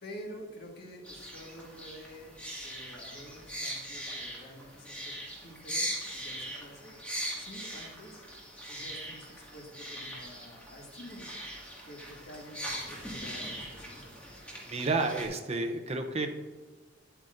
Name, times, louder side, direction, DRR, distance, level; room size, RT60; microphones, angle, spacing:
voice 1, 0.0-2.4 2.6-7.0 7.4-8.2 8.7-11.4 11.8-14.2, equal, 55° left, 0 dB, 1.8 m, -48 dB
sound 1, 1.0-15.3, equal, 5° left, 1.9 m, -40 dB
voice 2, 14.7-16.3, right 3 dB, 35° right, 5 dB, 0.7 m, -30 dB
11.0 x 8.0 x 2.6 m, 1.4 s
head